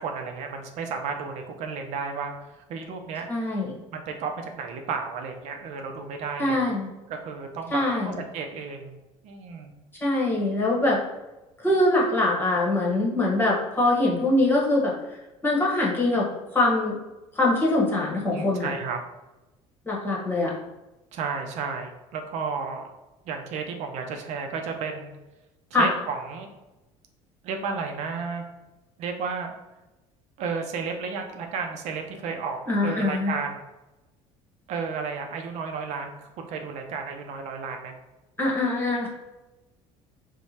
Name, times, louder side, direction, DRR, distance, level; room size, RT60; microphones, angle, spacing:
voice 1, 0.0-2.3 2.7-3.3 3.9-6.6 7.1-9.0 9.2-9.7 18.3-19.0 21.1-22.9 23.3-25.1 25.8-26.5 27.4-28.4 29.0-29.5 30.4-33.7 34.7-37.9, right 5 dB, 65° right, 4 dB, 0.5 m, -32 dB
voice 2, 3.3-3.7 6.4-6.9 7.7-8.2 10.0-11.0 11.6-15.2 15.4-16.9 17.3-18.7 19.8-20.5 25.7-25.9 32.7-33.3 38.4-39.1, left 2 dB, 15° left, -4 dB, 1.1 m, -23 dB
4.6 x 2.1 x 2.8 m, 1.0 s
cardioid pair, 120°, 13 cm